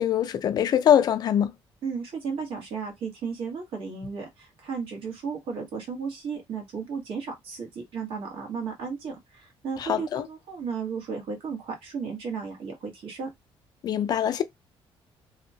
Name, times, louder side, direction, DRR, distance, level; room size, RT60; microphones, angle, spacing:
voice 1, 0.0-1.5 9.8-10.3 13.8-14.4, left 9 dB, 45° left, 0.4 m, -23 dB
voice 2, 1.8-13.3, right 5 dB, 65° right, 1.2 m, -34 dB
2.7 x 2.1 x 2.7 m
cardioid pair, 155°, 10 cm